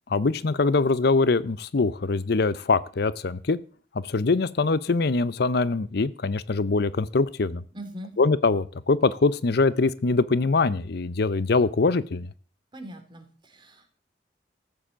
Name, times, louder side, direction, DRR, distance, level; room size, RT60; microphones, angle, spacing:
voice 1, 0.1-3.6 4.0-7.6 8.2-12.3, left 3 dB, 60° left, 17 dB, 0.6 m, -23 dB
voice 2, 7.7-8.1 12.7-13.9, equal, 25° right, 4 dB, 2.8 m, -41 dB
14.5 x 7.7 x 7.3 m, 0.41 s
head